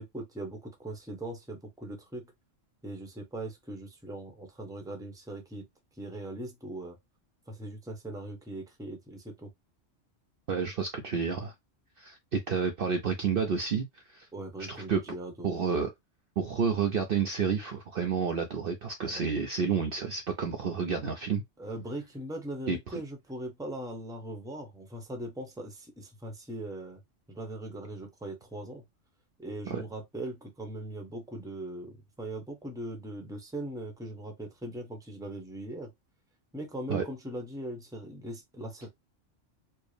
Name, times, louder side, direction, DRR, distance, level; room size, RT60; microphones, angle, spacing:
voice 1, 0.0-2.3 2.8-5.7 6.0-7.0 7.5-9.5 14.3-15.6 19.0-19.3 21.6-27.0 27.3-28.8 29.4-35.9 36.5-38.9, right 1 dB, 5° right, 0.8 m, -40 dB
voice 2, 10.5-11.5 12.0-13.9 14.1-14.3 14.7-15.0 15.4-15.9 16.4-21.4 22.7-22.9 29.7-29.8 36.9-37.0, right 6 dB, 55° right, 0.7 m, -30 dB
4.5 x 2.1 x 3.2 m
omnidirectional pair, 1.3 m